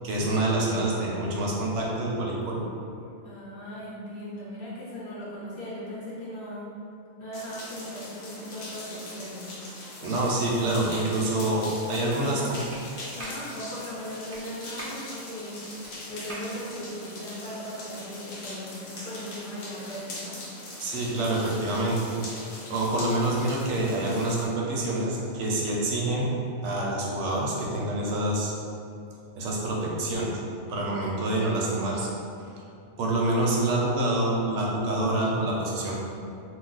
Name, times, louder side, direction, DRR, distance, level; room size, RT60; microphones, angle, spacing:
voice 1, 0.0-2.6 10.0-12.6 20.8-22.1 22.7-26.3 26.6-28.5 29.4-30.4 30.7-32.1 32.4-32.5 33.0-36.0, right 1 dB, 65° right, -3 dB, 0.8 m, -27 dB
voice 2, 3.2-6.7 7.2-9.5 11.9-12.5 13.1-15.8 16.1-20.4, equal, 50° left, -8 dB, 0.8 m, -38 dB
sound 1, 7.3-24.5, left 1 dB, 75° left, 1.1 m, -41 dB
Clapping, 12.7-12.8 13.2-13.4 14.3-14.4 14.8-15.0 15.8-15.9 16.3-16.5, right 1 dB, 45° right, 0.4 m, -39 dB
2.3 x 2.3 x 3.8 m, 2.5 s
omnidirectional pair, 1.5 m